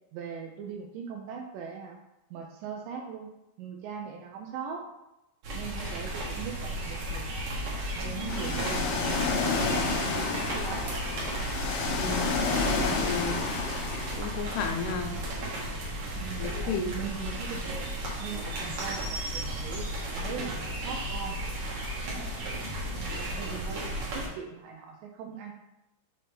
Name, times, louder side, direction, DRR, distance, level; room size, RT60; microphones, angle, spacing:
voice 1, 0.1-2.0 2.3-3.3 3.6-4.8 5.5-7.6 8.0-9.0 9.7-10.9 13.3-13.7 16.2-17.9 18.2-21.4 22.1-25.5, right 6 dB, 85° right, 1 dB, 1.9 m, -40 dB
sound 1, 5.4-24.3, right 1 dB, 65° right, 2.0 m, -34 dB
Ocean, 8.3-14.2, left 4 dB, 70° left, 2.2 m, -30 dB
sound 2, 8.7-16.9 17.4-24.9, equal, 45° right, 0.8 m, -48 dB
voice 2, 11.9-12.3 12.8-13.4 14.2-15.2 16.4-16.8, left 6 dB, 85° left, 5 dB, 2.6 m, -33 dB
6.4 x 4.3 x 3.3 m, 0.92 s
omnidirectional pair, 4.6 m